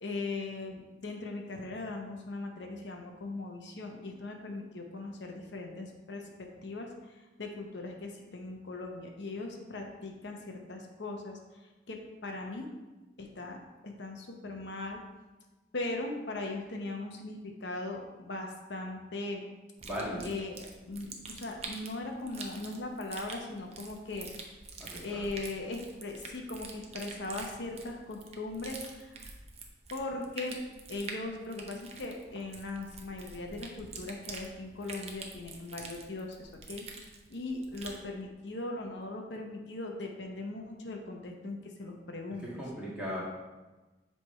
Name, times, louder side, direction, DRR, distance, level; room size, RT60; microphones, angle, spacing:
voice 1, 0.0-11.6 11.9-12.7 13.2-13.6 13.8-15.0 15.7-19.4 20.2-24.3 25.0-29.3 29.9-30.6 30.9-42.6, left 2 dB, 75° left, 2 dB, 0.8 m, -39 dB
voice 2, 19.8-20.4 24.8-25.2 42.4-43.2, equal, 5° right, -8 dB, 1.7 m, -37 dB
sound 1, 19.8-38.0, right 4 dB, 35° right, 0.7 m, -46 dB
7.5 x 3.4 x 4.3 m, 1.1 s
head